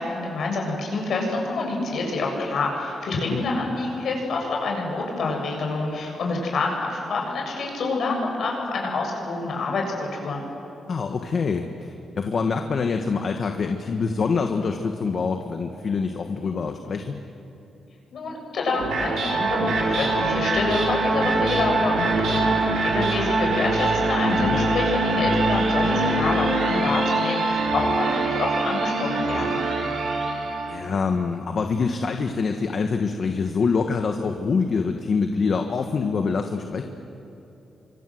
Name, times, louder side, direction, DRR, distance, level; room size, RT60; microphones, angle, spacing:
voice 1, 0.0-10.4 18.1-29.6, left 3 dB, 65° left, 0 dB, 7.6 m, -27 dB
voice 2, 10.9-17.1 24.2-24.6 30.7-36.8, left 5 dB, 50° left, 5 dB, 1.4 m, -25 dB
sound 1, 18.6-30.9, right 2 dB, 75° right, 5.3 m, -23 dB
29.5 x 25.5 x 7.8 m, 2.9 s
cardioid pair, 125°, 0 cm